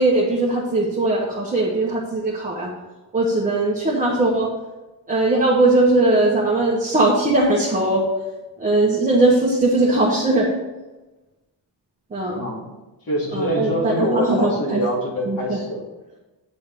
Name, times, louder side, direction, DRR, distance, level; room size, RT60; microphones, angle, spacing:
voice 1, 0.0-2.7 3.1-4.5 5.1-8.0 8.6-10.5 12.1-12.4 13.3-14.8 15.3-15.6, right 2 dB, 20° right, -5 dB, 1.4 m, -19 dB
voice 2, 12.3-15.9, equal, 50° left, -3 dB, 2.7 m, -25 dB
9.3 x 4.1 x 5.3 m, 1.1 s
cardioid pair, 130°, 44 cm